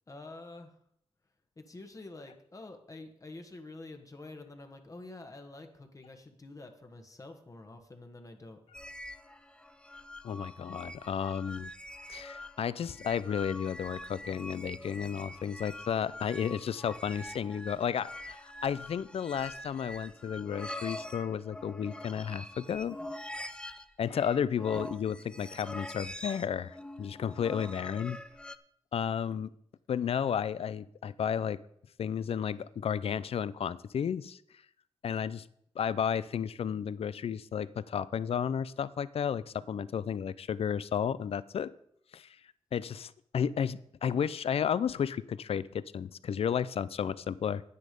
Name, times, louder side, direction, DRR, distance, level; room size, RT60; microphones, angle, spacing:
voice 1, 0.1-0.8 1.6-8.6, left 2 dB, 30° left, 5 dB, 1.4 m, -48 dB
sound 1, 8.7-28.6, left 1 dB, 10° left, 0.6 m, -44 dB
voice 2, 10.2-11.7 12.1-23.0 24.0-28.2 28.9-29.5 29.9-31.6 32.0-34.4 35.0-35.4 35.8-41.7 42.1-42.3 42.7-47.6, left 8 dB, 70° left, 18 dB, 0.5 m, -32 dB
10.0 x 9.6 x 5.2 m, 0.70 s
wide cardioid pair, 100°, 10 cm